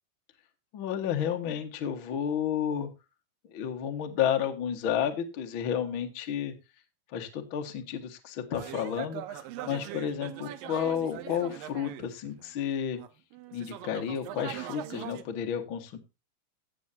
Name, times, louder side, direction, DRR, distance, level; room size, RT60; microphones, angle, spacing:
voice 1, 0.7-2.9 3.5-6.5 7.1-13.0 13.5-16.0, left 9 dB, 60° left, 5 dB, 1.3 m, -31 dB
sound 1, 8.5-12.5 13.0-15.2, right 13 dB, 75° right, 2.3 m, -41 dB
16.5 x 7.4 x 2.7 m, 0.26 s
omnidirectional pair, 4.6 m